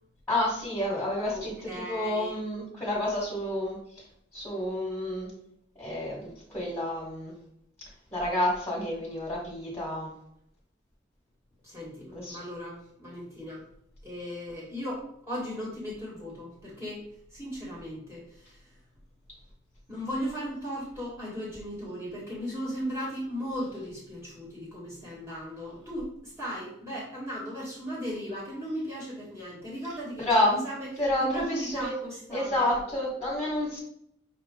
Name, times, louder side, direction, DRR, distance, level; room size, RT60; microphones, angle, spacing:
voice 1, 0.3-4.0 4.3-5.3 5.8-7.3 8.1-10.1 12.1-12.4 30.2-30.5 31.0-31.9 32.3-33.8, left 1 dB, 10° left, -5 dB, 1.3 m, -29 dB
voice 2, 1.3-2.4 11.6-13.6 14.0-18.7 19.9-30.9 31.2-32.7, equal, 10° right, -6 dB, 1.3 m, -37 dB
5.7 x 2.4 x 3.7 m, 0.73 s
head